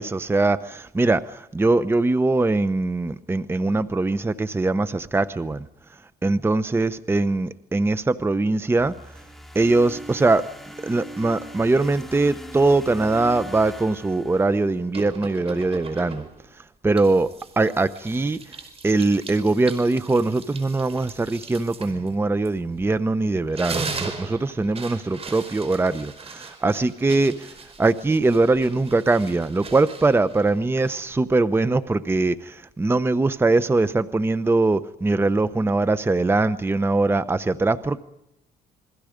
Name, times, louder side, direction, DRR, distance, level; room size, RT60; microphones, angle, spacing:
voice 1, 0.0-5.7 6.2-9.1 9.5-10.5 10.8-16.3 16.8-17.3 17.6-18.4 18.8-38.0, right 2 dB, 15° right, 13 dB, 0.9 m, -22 dB
sound 1, 8.8-14.9, right 1 dB, ahead, 2.7 m, -40 dB
sound 2, 14.9-16.5 17.0-23.0 23.4-31.2, right 4 dB, 35° right, 5.0 m, -39 dB
28.5 x 22.0 x 5.2 m, 0.81 s
cardioid pair, 110°, 17 cm